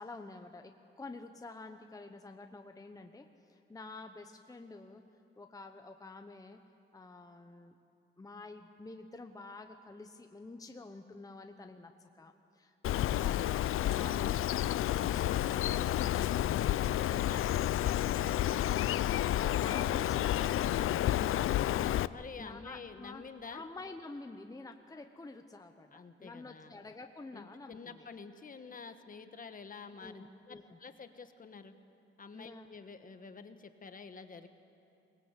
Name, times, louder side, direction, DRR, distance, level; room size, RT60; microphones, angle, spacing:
voice 1, 0.0-5.0 5.4-6.6 6.9-7.7 8.2-16.5 19.4-21.0 22.4-23.2 23.5-28.1 30.0-30.8 32.3-32.7, left 3 dB, 15° left, 5 dB, 0.9 m, -49 dB
Bird, 12.8-22.1, left 12 dB, 85° left, 0.5 m, -30 dB
voice 2, 16.8-18.9 21.3-23.6 25.9-26.7 27.3-31.7 32.2-34.5, left 5 dB, 40° left, 9 dB, 1.3 m, -49 dB
22.5 x 20.0 x 8.2 m, 2.9 s
cardioid pair, 120°, 21 cm